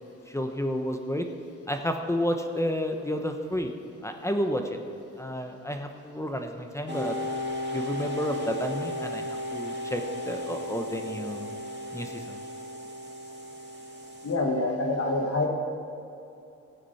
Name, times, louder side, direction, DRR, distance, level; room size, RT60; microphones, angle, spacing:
voice 1, 0.3-1.3 1.7-3.7 4.0-4.8 5.2-7.2 7.7-9.3 9.5-11.5 11.9-12.4, equal, 10° left, 5 dB, 1.0 m, -31 dB
sound 1, 6.9-14.3, left 1 dB, 35° right, 2.2 m, -35 dB
voice 2, 14.2-15.5, left 2 dB, 50° left, 1 dB, 1.9 m, -26 dB
15.0 x 9.2 x 4.3 m, 2.8 s
cardioid pair, 70°, 30 cm